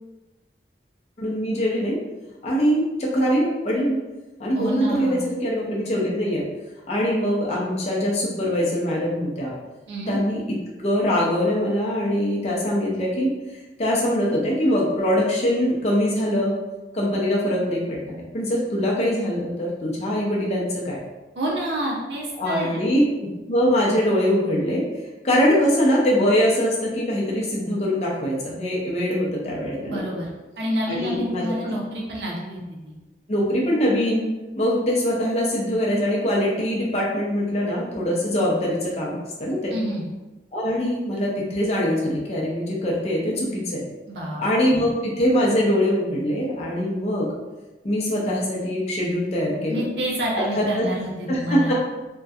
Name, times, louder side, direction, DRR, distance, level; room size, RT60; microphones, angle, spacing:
voice 1, 1.2-2.0 2.4-4.0 4.4-6.4 6.9-9.5 10.1-10.6 10.8-13.3 13.8-16.5 16.9-21.0 22.4-23.0 23.5-24.8 25.2-30.1 30.8-31.7 33.3-34.2 34.6-39.7 40.5-43.8 44.4-47.3 47.8-49.8 50.3-50.9 51.3-51.7, equal, 35° left, -4 dB, 0.5 m, -23 dB
voice 2, 4.5-5.2 9.9-10.2 21.4-22.8 29.8-30.3 30.6-32.9 39.7-40.1 44.1-44.4 44.7-44.9 49.7-51.7, right 1 dB, 75° right, -3 dB, 0.5 m, -28 dB
2.6 x 2.2 x 2.3 m, 1.1 s
head